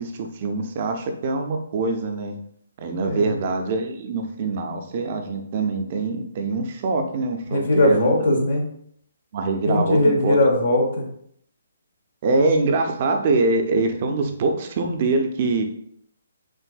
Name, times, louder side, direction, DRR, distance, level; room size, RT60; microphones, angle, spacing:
voice 1, 0.0-2.4 2.8-8.2 9.3-10.4 12.2-15.6, right 3 dB, 45° right, 5 dB, 0.6 m, -24 dB
voice 2, 3.0-3.4 7.5-8.7 9.6-11.1, left 1 dB, 60° left, 0 dB, 1.0 m, -20 dB
6.1 x 2.6 x 2.3 m, 0.67 s
figure-of-eight pair, 135°, 0 cm